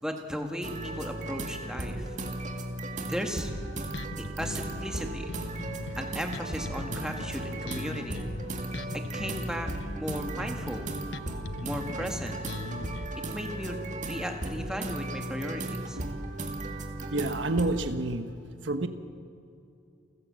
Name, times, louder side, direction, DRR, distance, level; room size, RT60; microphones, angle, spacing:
voice 1, 0.0-2.2 3.0-3.5 4.2-5.3 6.0-8.2 8.9-10.9 11.6-12.4 13.3-13.8 14.0-16.0, equal, 5° right, 3 dB, 1.8 m, -36 dB
sound 1, 0.6-17.9, right 1 dB, 40° right, 2.1 m, -36 dB
Bass guitar, 3.5-13.1, left 3 dB, 70° left, 0.7 m, -40 dB
voice 2, 17.1-18.3 18.6-18.9, right 2 dB, 70° right, 9 dB, 1.1 m, -28 dB
29.5 x 15.0 x 7.6 m, 2.7 s
head